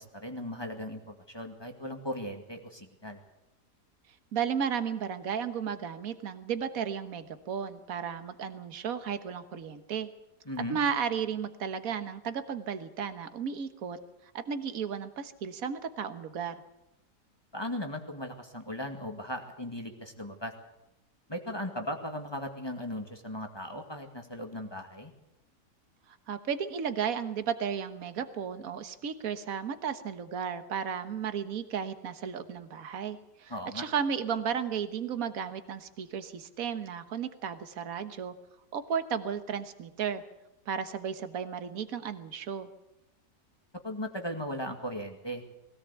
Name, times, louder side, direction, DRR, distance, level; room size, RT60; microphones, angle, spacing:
voice 1, 0.0-3.2 10.5-10.8 17.5-20.5 21.3-25.1 33.5-33.9 43.8-45.4, equal, 15° left, 4 dB, 2.0 m, -37 dB
voice 2, 4.3-10.1 10.7-16.5 26.1-38.3 38.7-40.2 40.7-42.7, right 7 dB, 55° right, 10 dB, 1.6 m, -34 dB
20.0 x 17.5 x 8.3 m, 0.89 s
omnidirectional pair, 1.8 m